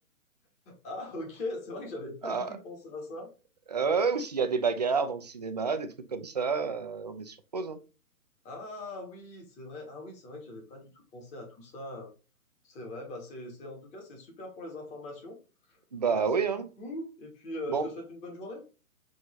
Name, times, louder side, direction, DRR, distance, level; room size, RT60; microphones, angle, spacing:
voice 1, 0.7-3.3 8.4-12.1 12.6-15.4 15.7-18.6, left 2 dB, 15° left, 2 dB, 1.2 m, -41 dB
voice 2, 3.7-7.8 15.9-16.6 17.7-17.9, right 5 dB, 30° right, 9 dB, 0.4 m, -29 dB
6.2 x 2.6 x 3.1 m, 0.32 s
figure-of-eight pair, 135°, 44 cm